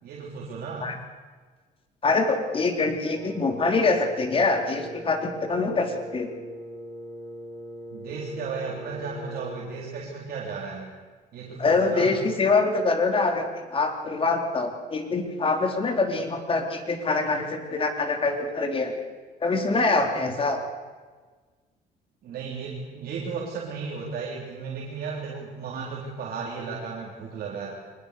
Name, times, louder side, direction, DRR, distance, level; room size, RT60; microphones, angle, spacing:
voice 1, 0.0-0.9 7.9-10.9 11.3-12.1 22.2-27.8, right 5 dB, 65° right, -3 dB, 3.8 m, -35 dB
voice 2, 2.0-6.3 11.6-19.0 19.4-20.6, left 3 dB, 30° left, 5 dB, 3.6 m, -24 dB
Wind instrument woodwind instrument, 3.1-9.8, equal, 15° left, 6.6 m, -40 dB
23.5 x 20.0 x 6.8 m, 1.4 s
cardioid pair, 110°, 17 cm